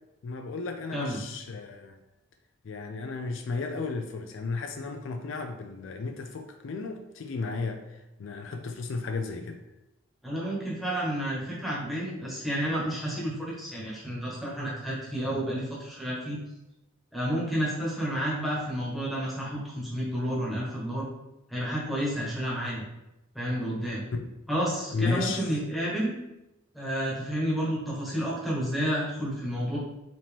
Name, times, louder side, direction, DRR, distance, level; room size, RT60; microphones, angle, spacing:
voice 1, 0.2-2.0 2.6-9.6 24.1-24.3 24.9-25.5, left 4 dB, 65° left, 6 dB, 0.4 m, -34 dB
voice 2, 0.9-1.2 10.2-16.4 17.1-21.1 21.5-22.8 23.3-24.0 24.5-26.1 26.7-29.8, equal, ahead, -7 dB, 1.3 m, -30 dB
5.0 x 2.9 x 3.5 m, 0.91 s
head